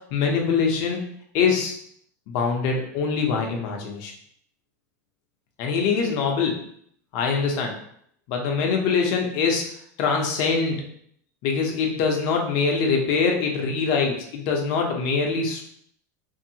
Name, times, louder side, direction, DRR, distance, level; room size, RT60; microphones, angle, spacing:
voice 1, 0.1-1.0 1.3-1.7 2.3-4.1 5.6-6.6 7.1-7.7 8.3-9.6 10.0-10.8 11.4-15.6, left 5 dB, 55° left, 2 dB, 0.8 m, -23 dB
2.8 x 2.7 x 2.8 m, 0.66 s
supercardioid pair, 120°, 10 cm